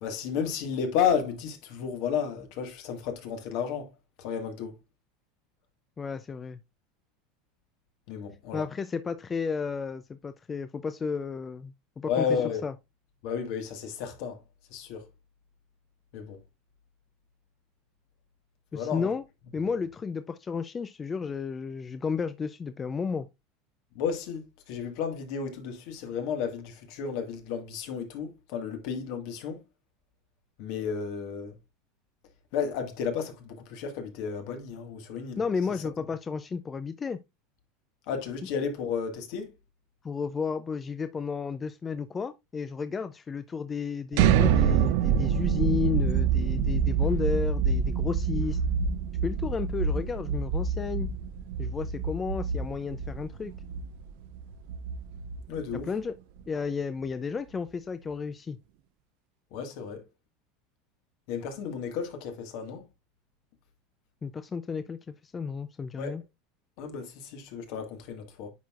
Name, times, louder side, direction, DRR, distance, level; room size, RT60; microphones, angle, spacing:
voice 1, 0.0-3.9 4.2-4.8 8.1-8.6 12.1-12.6 13.2-14.4 14.7-15.1 16.1-16.4 18.7-19.1 24.0-29.6 30.6-31.6 32.5-35.4 38.1-39.5 55.5-55.9 59.5-60.0 61.3-62.9 66.0-66.1 66.8-68.5, left 7 dB, 65° left, 1.6 m, -32 dB
voice 2, 6.0-6.6 8.5-12.7 18.7-19.2 19.5-23.3 35.4-37.2 40.0-48.6 49.2-51.1 51.6-53.5 55.7-56.2 56.5-58.6 64.2-66.2, left 5 dB, 25° left, 0.4 m, -32 dB
sound 1, 44.1-56.0, right 6 dB, 70° right, 0.5 m, -26 dB
9.3 x 4.5 x 2.4 m
supercardioid pair, 115°, 0 cm